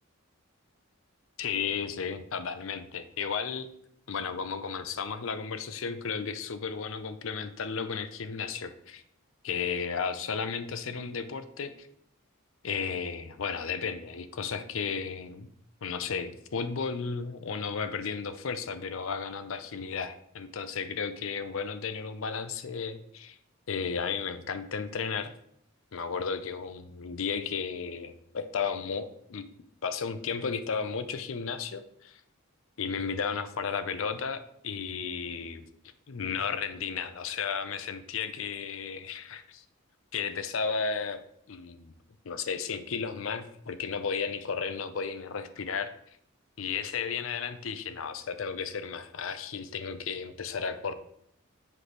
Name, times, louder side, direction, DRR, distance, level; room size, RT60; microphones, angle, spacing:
voice 1, 1.4-3.7 4.1-9.0 9.4-11.9 12.6-15.5 15.8-23.4 23.7-25.3 25.9-29.4 29.8-32.2 32.8-35.6 36.1-39.6 40.1-41.9 42.2-45.9 46.6-50.9, left 6 dB, 70° left, 11 dB, 0.5 m, -34 dB
7.6 x 3.2 x 6.0 m, 0.69 s
head